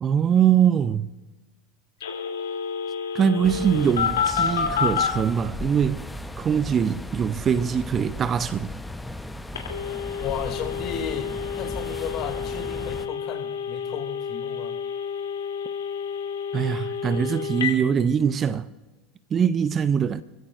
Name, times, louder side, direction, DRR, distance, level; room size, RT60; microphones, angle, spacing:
voice 1, 0.0-1.1 3.1-6.1 6.4-8.7 16.5-18.7 19.3-20.2, right 8 dB, 30° right, 0.6 m, -22 dB
Telephone, 2.0-5.1 9.5-17.7, left 7 dB, 75° left, 3.0 m, -29 dB
sound 1, 3.4-13.1, left 1 dB, 5° left, 0.9 m, -36 dB
voice 2, 10.2-14.8, left 8 dB, 45° left, 2.6 m, -34 dB
28.0 x 16.0 x 2.6 m
figure-of-eight pair, 80°, 0 cm